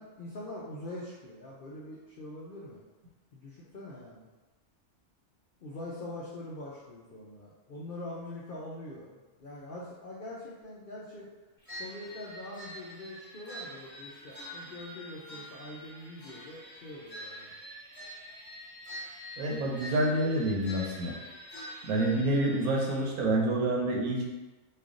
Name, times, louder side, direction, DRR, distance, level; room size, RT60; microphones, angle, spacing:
voice 1, 0.0-2.8 3.3-4.3 5.6-11.3 11.8-17.5, left 1 dB, 70° left, -5 dB, 0.5 m, -43 dB
sound 1, 11.7-23.1, equal, 10° left, 1.1 m, -46 dB
voice 2, 19.4-21.1 21.9-24.2, right 1 dB, 75° right, -1 dB, 1.1 m, -28 dB
3.2 x 2.4 x 3.7 m, 1.2 s
omnidirectional pair, 1.6 m